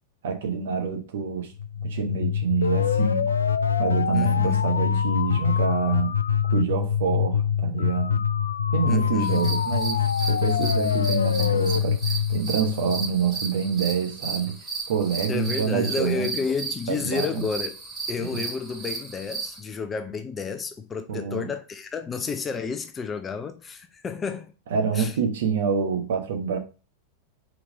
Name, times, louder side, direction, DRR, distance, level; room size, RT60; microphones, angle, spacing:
voice 1, 0.2-1.5 1.8-3.3 3.8-6.2 6.5-8.2 8.7-14.6 14.9-16.4 16.9-17.4 18.2-18.4 21.1-21.5 24.7-26.6, right 6 dB, 60° right, 1.2 m, -27 dB
sound 1, 1.6-13.4, left 8 dB, 70° left, 0.3 m, -24 dB
voice 2, 4.1-4.6 8.9-9.5 15.3-17.7 18.1-24.5 24.9-25.1, left 5 dB, 20° left, 0.7 m, -31 dB
sound 2, 9.2-19.6, right 4 dB, 20° right, 2.3 m, -35 dB
4.7 x 4.3 x 5.1 m
figure-of-eight pair, 90°, 0 cm